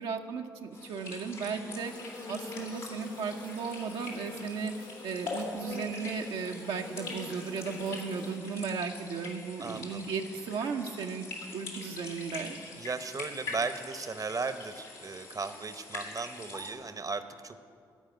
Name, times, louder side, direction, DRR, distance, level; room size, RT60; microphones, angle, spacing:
voice 1, 0.0-1.9 2.3-4.7 5.0-11.3 11.5-12.6, right 5 dB, 75° right, 2 dB, 0.7 m, -35 dB
sound 1, 0.7-16.7, left 3 dB, 85° left, 2.2 m, -44 dB
sound 2, 1.7-8.4, left 3 dB, 50° left, 1.0 m, -45 dB
voice 2, 9.6-10.1 12.8-17.6, right 4 dB, 40° right, 11 dB, 0.8 m, -36 dB
13.5 x 4.8 x 9.0 m, 2.4 s
hypercardioid pair, 45°, 10 cm